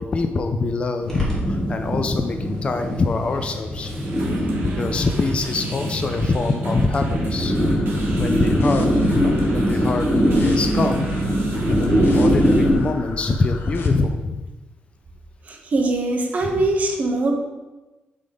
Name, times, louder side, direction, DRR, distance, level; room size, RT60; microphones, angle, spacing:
voice 1, 0.0-3.9 4.6-7.6 8.1-11.1 11.7-14.4 16.4-16.7, left 3 dB, 30° left, 6 dB, 0.4 m, -24 dB
sound 1, 1.0-12.8, equal, 10° left, 2.2 m, -22 dB
sound 2, 3.8-12.7, right 4 dB, 65° right, 1.5 m, -36 dB
sound 3, 7.4-13.9, left 3 dB, 70° left, 1.0 m, -34 dB
voice 2, 15.5-17.3, right 2 dB, 40° right, 2 dB, 1.0 m, -22 dB
7.5 x 3.7 x 5.3 m, 1.1 s
wide cardioid pair, 170°, 4 cm